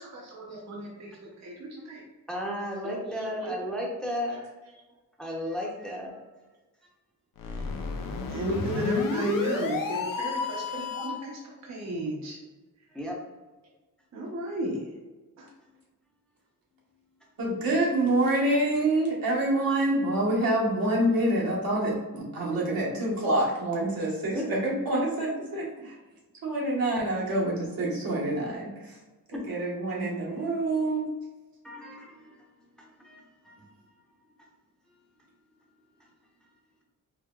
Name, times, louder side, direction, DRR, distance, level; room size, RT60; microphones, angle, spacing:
voice 1, 0.0-2.0 2.8-3.5 7.4-7.6 8.3-12.4 14.1-14.9 15.4-15.5, right 1 dB, 50° right, -3 dB, 0.8 m, -33 dB
voice 2, 2.3-4.4 5.2-6.1 12.9-13.2 24.3-24.4 29.3-29.4 31.6-32.4 32.8-33.6, equal, ahead, -3 dB, 0.7 m, -34 dB
sound 1, 7.4-11.3, left 4 dB, 70° left, 0.6 m, -32 dB
voice 3, 17.4-25.7 26.4-28.9 29.3-31.0, right 1 dB, 80° right, -5 dB, 1.3 m, -26 dB
4.7 x 2.9 x 2.3 m, 1.2 s
wide cardioid pair, 145°, 34 cm